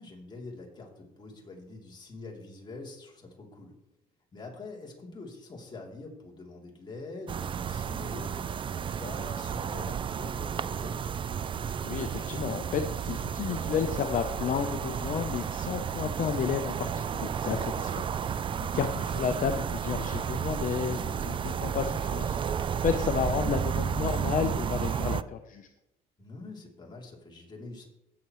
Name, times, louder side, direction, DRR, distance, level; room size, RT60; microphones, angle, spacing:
voice 1, 0.0-3.7 4.3-11.1 17.5-18.0 26.2-27.9, left 3 dB, 25° left, -1 dB, 3.1 m, -45 dB
sound 1, 7.3-25.2, right 8 dB, 30° right, 0.4 m, -32 dB
voice 2, 11.8-25.7, left 7 dB, 50° left, 6 dB, 0.8 m, -32 dB
17.0 x 6.9 x 3.1 m, 0.89 s
cardioid pair, 110°, 17 cm